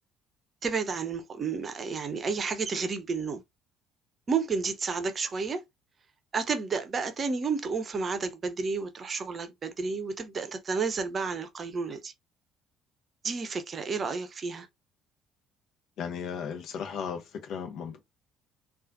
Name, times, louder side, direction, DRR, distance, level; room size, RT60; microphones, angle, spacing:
voice 1, 0.6-3.4 4.3-5.6 6.3-12.1 13.2-14.7, right 5 dB, 35° right, 0.7 m, -31 dB
voice 2, 16.0-18.0, left 7 dB, 55° left, 0.8 m, -36 dB
3.9 x 2.4 x 2.6 m
figure-of-eight pair, 50°, 0 cm